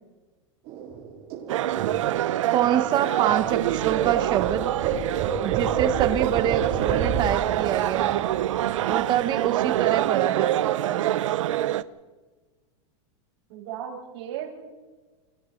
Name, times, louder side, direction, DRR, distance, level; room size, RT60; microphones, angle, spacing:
sound 1, 0.7-4.1 4.3-9.3 9.6-9.9 10.1-10.7, right 8 dB, 45° right, 4.2 m, -31 dB
sound 2, 1.5-11.8, right 13 dB, 80° right, 0.8 m, -25 dB
voice 1, 2.5-4.7 5.4-8.3 8.9-10.5 10.8-11.2, right 11 dB, 25° right, 9 dB, 1.2 m, -26 dB
sound 3, 3.3-7.2, equal, 40° left, 6.1 m, -44 dB
voice 2, 6.2-6.5 9.1-9.5 13.5-14.6, right 10 dB, 60° right, 1 dB, 5.5 m, -37 dB
30.0 x 22.0 x 4.0 m, 1.3 s
supercardioid pair, 155°, 16 cm